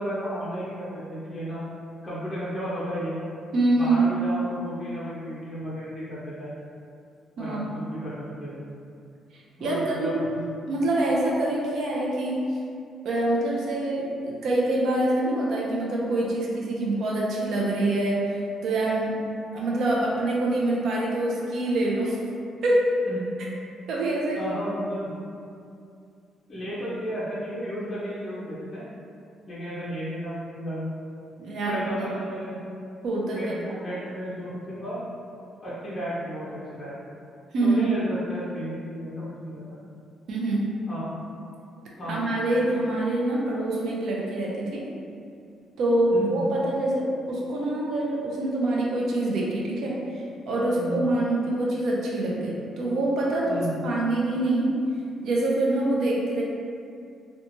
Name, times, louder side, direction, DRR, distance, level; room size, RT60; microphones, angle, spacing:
voice 1, 0.0-1.6 2.0-3.2 3.7-6.5 7.4-8.7 9.6-10.4 23.1-23.3 24.3-25.1 26.5-28.8 29.5-30.9 31.7-32.6 33.3-35.0 35.6-37.0 37.6-39.6 40.9-41.1 42.0-42.3 46.1-46.5 50.8-51.1 53.5-53.8, equal, 25° left, -9 dB, 0.5 m, -33 dB
voice 2, 3.5-4.1 7.4-7.6 9.6-10.2 10.7-12.4 13.0-19.2 19.5-22.2 22.6-22.9 23.9-24.5 31.4-32.1 33.0-33.8 37.5-37.9 40.3-40.7 42.1-44.8 45.8-54.7 55.2-56.4, right 2 dB, 65° right, -4 dB, 0.5 m, -25 dB
2.8 x 2.2 x 2.6 m, 2.5 s
cardioid pair, 135°, 0 cm